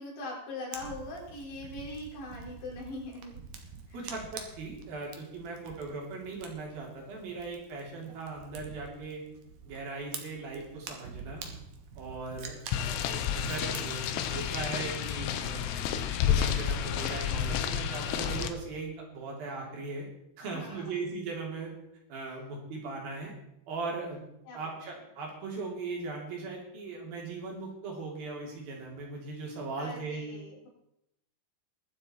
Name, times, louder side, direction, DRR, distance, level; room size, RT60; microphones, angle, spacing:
voice 1, 0.0-3.4 3.9-4.1 20.4-21.0 22.3-22.4 24.4-24.8 29.8-30.7, left 2 dB, 55° left, -5 dB, 6.7 m, -42 dB
Fire, 0.7-14.5, right 6 dB, 70° right, 1.8 m, -47 dB
voice 2, 3.9-9.2 9.7-11.4 12.0-15.6 16.3-20.1 20.4-21.7 22.1-23.3 23.7-24.2 24.5-30.2, right 3 dB, 55° right, -1 dB, 4.2 m, -39 dB
sound 1, 12.7-18.5, left 9 dB, 85° left, 3.5 m, -30 dB
22.0 x 7.9 x 4.3 m, 0.81 s
omnidirectional pair, 5.6 m